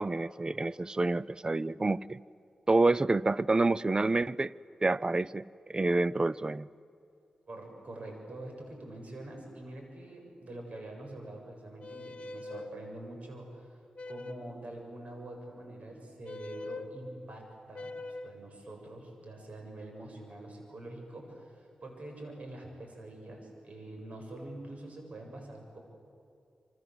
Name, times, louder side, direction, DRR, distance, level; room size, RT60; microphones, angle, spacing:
voice 1, 0.0-2.2 2.7-4.5 4.8-6.7, right 2 dB, 35° right, 0.6 m, -28 dB
voice 2, 7.5-13.7 14.1-25.8, right 1 dB, 60° right, 7.6 m, -45 dB
sound 1, 11.8-12.7 14.0-14.6 16.2-16.9 17.7-18.4, left 3 dB, 50° left, 1.8 m, -42 dB
27.5 x 26.0 x 8.0 m
cardioid pair, 45°, 3 cm